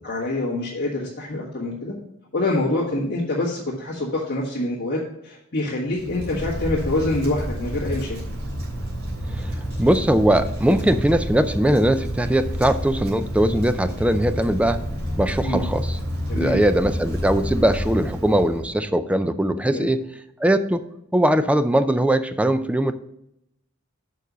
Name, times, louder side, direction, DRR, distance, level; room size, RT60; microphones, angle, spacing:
voice 1, 0.0-1.9 2.3-8.2 15.4-15.7 16.3-16.6 19.7-19.9, left 2 dB, 45° left, -7 dB, 1.8 m, -26 dB
Wind, 5.9-18.7, equal, 70° right, 3.4 m, -29 dB
voice 2, 9.8-14.8 15.2-16.0 16.3-20.0 20.4-20.9 21.1-22.9, right 1 dB, 5° right, 10 dB, 0.4 m, -20 dB
6.7 x 5.4 x 6.1 m, 0.80 s
head